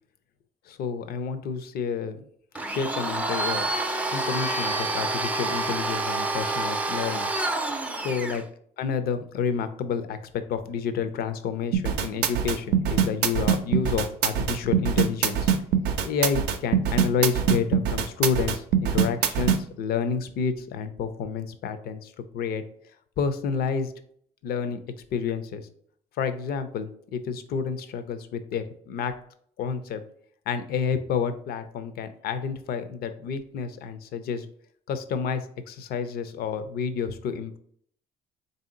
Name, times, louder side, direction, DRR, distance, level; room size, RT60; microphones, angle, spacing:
voice 1, 0.7-2.3 2.7-3.7 4.1-7.3 8.0-8.4 8.8-15.5 16.0-22.6 23.2-23.9 24.4-24.8 25.1-25.7 26.2-29.1 29.6-30.0 30.5-34.5 34.9-37.6, left 6 dB, 65° left, 10 dB, 0.5 m, -29 dB
Domestic sounds home sounds, 2.6-8.4, right 2 dB, 10° right, 0.4 m, -28 dB
sound 1, 11.7-19.6, right 8 dB, 80° right, 0.5 m, -23 dB
3.7 x 2.7 x 3.7 m, 0.63 s
cardioid pair, 110°, 17 cm